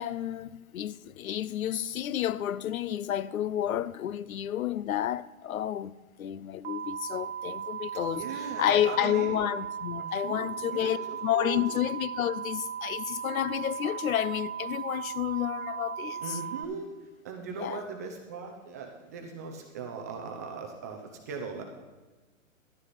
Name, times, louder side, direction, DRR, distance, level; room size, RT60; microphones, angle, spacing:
voice 1, 0.0-5.9 6.2-16.4 17.5-17.9, left 11 dB, 85° left, 0.6 m, -30 dB
sound 1, 6.6-16.6, right 8 dB, 50° right, 1.0 m, -37 dB
voice 2, 8.2-9.3 9.9-11.7 16.2-16.9 17.2-21.6, right 5 dB, 15° right, 0.4 m, -39 dB
11.5 x 9.7 x 4.1 m
hypercardioid pair, 145°, 41 cm